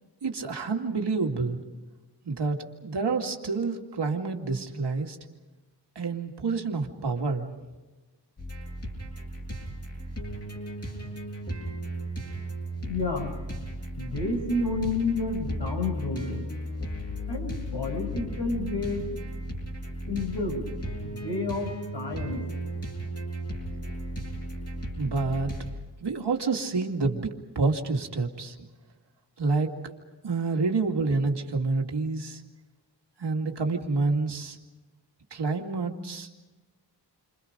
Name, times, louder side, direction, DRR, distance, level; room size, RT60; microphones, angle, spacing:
voice 1, 0.2-1.6 2.2-5.2 6.0-7.5 25.0-25.5 26.0-27.3 27.5-28.6 29.4-30.0 30.2-32.4 33.2-34.6 35.3-36.4, right 3 dB, 70° right, 2 dB, 2.5 m, -28 dB
sound 1, 8.4-25.7, equal, 35° left, 7.7 m, -35 dB
voice 2, 12.9-13.3 14.0-16.4 17.3-19.1 20.0-20.6 21.0-22.4, left 3 dB, 70° left, 1 dB, 8.0 m, -30 dB
30.0 x 26.0 x 5.2 m, 1.2 s
wide cardioid pair, 135°, 43 cm